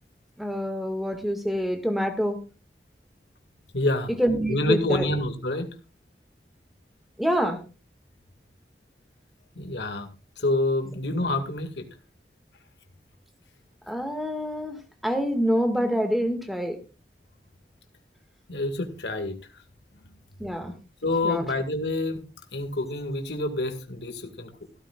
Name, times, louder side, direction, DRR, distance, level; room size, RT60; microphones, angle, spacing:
voice 1, 0.4-2.4 4.2-5.1 7.2-7.6 13.9-14.8 15.0-16.8 20.4-20.7 21.2-21.4, equal, ahead, 6 dB, 1.8 m, -26 dB
voice 2, 3.7-4.1 4.5-5.7 9.6-10.1 10.4-11.9 18.5-19.6 21.0-22.2 22.5-24.5, left 2 dB, 80° left, 6 dB, 2.1 m, -27 dB
16.0 x 13.5 x 2.4 m, 0.31 s
head